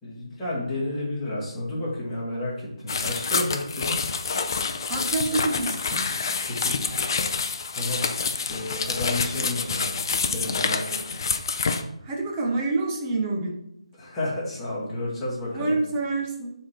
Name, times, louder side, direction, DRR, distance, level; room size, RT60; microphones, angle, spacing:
voice 1, 0.0-4.0 6.3-7.4 7.7-8.1 8.3-11.2 13.9-15.7, left 1 dB, 10° left, -9 dB, 2.2 m, -32 dB
sound 1, 2.9-11.8, left 5 dB, 40° left, 0.5 m, -27 dB
voice 2, 4.9-6.0 12.0-13.6 15.5-16.5, right 3 dB, 20° right, 0 dB, 1.0 m, -27 dB
6.2 x 3.8 x 4.5 m, 0.78 s
figure-of-eight pair, 155°, 3 cm